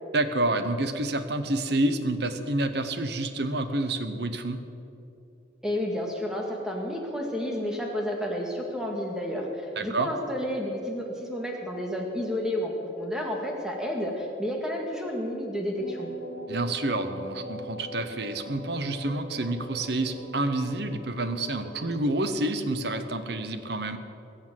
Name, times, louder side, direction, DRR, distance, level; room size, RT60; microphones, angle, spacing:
voice 1, 0.1-4.6 9.8-10.1 16.5-24.0, right 2 dB, 60° right, 9 dB, 1.0 m, -28 dB
voice 2, 5.6-16.1, equal, 5° right, 0 dB, 1.9 m, -31 dB
sound 1, 15.8-22.3, right 1 dB, 55° left, 3.2 m, -42 dB
21.0 x 7.2 x 7.6 m, 2.8 s
head